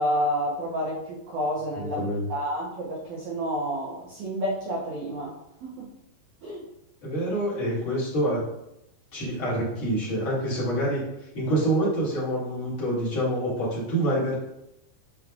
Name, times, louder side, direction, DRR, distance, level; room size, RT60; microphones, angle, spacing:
voice 1, 0.0-2.0 2.3-5.3 5.6-5.9 6.4-6.6, equal, 80° right, -4 dB, 1.7 m, -29 dB
voice 2, 1.8-2.2 7.0-8.5 9.1-14.3, right 1 dB, 40° left, -8 dB, 2.2 m, -26 dB
9.7 x 5.0 x 2.5 m, 0.84 s
omnidirectional pair, 5.1 m